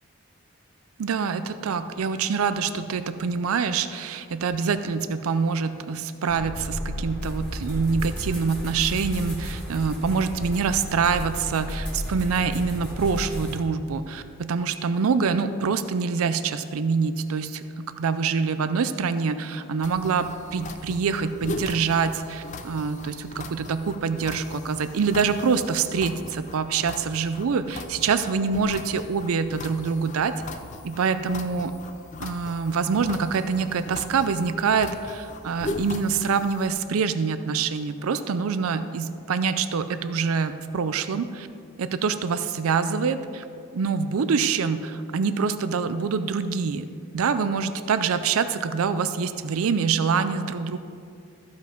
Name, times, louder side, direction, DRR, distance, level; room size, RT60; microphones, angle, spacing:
voice 1, 1.0-30.3 30.8-31.7 32.2-41.5 41.8-43.4 43.7-46.9 47.1-50.8, right 5 dB, 85° right, 11 dB, 0.4 m, -25 dB
sound 1, 6.3-13.6, left 1 dB, 5° left, 1.8 m, -33 dB
sound 2, 19.8-36.7, left 2 dB, 35° left, 0.5 m, -39 dB
14.0 x 5.3 x 5.1 m, 2.4 s
head